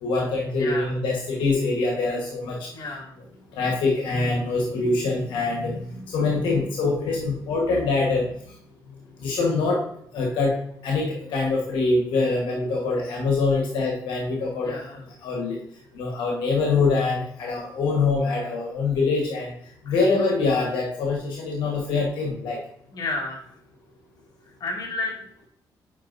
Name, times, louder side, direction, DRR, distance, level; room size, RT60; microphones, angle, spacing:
voice 1, 0.0-2.7 3.5-8.3 9.2-9.8 10.1-10.5 10.8-14.8 15.2-15.6 15.9-19.5 19.8-22.6, left 3 dB, 90° left, 0 dB, 1.2 m, -24 dB
voice 2, 0.6-1.0 2.7-3.1 14.6-15.1 19.9-20.0 22.9-23.5 24.4-25.2, left 3 dB, 60° left, -1 dB, 2.1 m, -32 dB
8.4 x 5.1 x 2.5 m, 0.68 s
cardioid pair, 85°, 8 cm